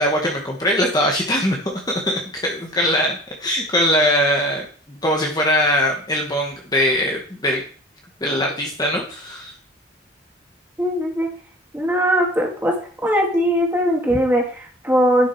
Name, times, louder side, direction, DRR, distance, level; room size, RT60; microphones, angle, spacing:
voice 1, 0.0-4.7 5.0-7.6 8.2-9.5, equal, 20° left, 0 dB, 1.3 m, -21 dB
voice 2, 10.8-11.3 11.7-12.7 13.0-15.3, equal, 10° right, -1 dB, 2.4 m, -19 dB
11.0 x 6.2 x 4.6 m, 0.43 s
head